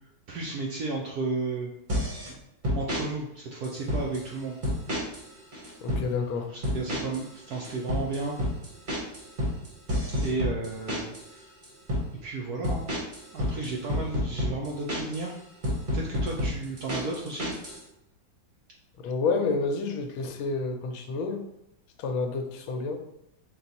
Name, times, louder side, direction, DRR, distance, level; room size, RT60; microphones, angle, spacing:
voice 1, 0.3-1.7 2.7-4.6 6.5-8.4 10.2-11.5 12.2-12.9 13.3-15.4 15.9-17.5, right 3 dB, 75° right, -2 dB, 0.9 m, -33 dB
sound 1, 1.9-2.3 2.6-3.0 3.6-4.3 4.6-5.2 5.5-6.0 6.6-7.2 7.5-11.3 11.6-12.1 12.6-15.2 15.6-17.8, left 1 dB, 35° right, 0.9 m, -29 dB
voice 2, 5.8-6.5 19.0-21.4 22.0-23.0, left 4 dB, 85° left, 4 dB, 1.4 m, -29 dB
4.1 x 2.3 x 3.9 m, 0.84 s
omnidirectional pair, 2.2 m